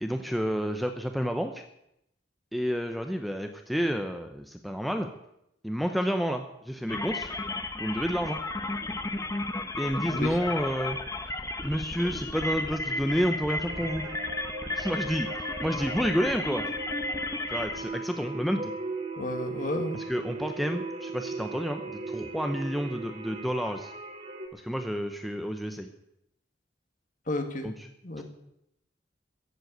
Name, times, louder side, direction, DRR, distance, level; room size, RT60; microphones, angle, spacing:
voice 1, 0.0-1.6 2.5-5.1 5.6-7.3 7.8-8.4 9.8-11.0 11.6-14.0 14.8-15.3 15.6-16.6 17.5-18.7 19.9-23.9 24.5-25.9 27.6-27.7 28.2-28.3, equal, ahead, 5 dB, 0.8 m, -30 dB
sound 1, 6.9-17.8, left 2 dB, 15° left, 1.1 m, -34 dB
sound 2, 13.6-24.5, right 3 dB, 35° right, 2.2 m, -38 dB
voice 2, 19.2-20.0 27.3-27.7 28.0-28.2, left 1 dB, 45° left, 6 dB, 1.9 m, -32 dB
14.5 x 7.8 x 9.2 m, 0.80 s
head